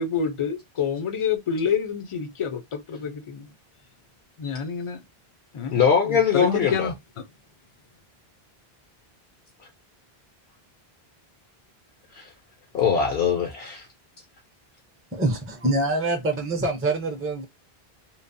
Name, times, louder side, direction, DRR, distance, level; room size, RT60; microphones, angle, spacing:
voice 1, 0.0-3.5 4.4-5.0 5.5-5.8 6.1-6.9, left 6 dB, 40° left, 0.5 m, -27 dB
voice 2, 5.7-6.9 12.1-12.3 12.7-13.9, left 7 dB, 70° left, 0.9 m, -21 dB
voice 3, 15.1-17.5, right 2 dB, 15° right, 0.5 m, -25 dB
3.0 x 2.0 x 2.6 m
omnidirectional pair, 1.0 m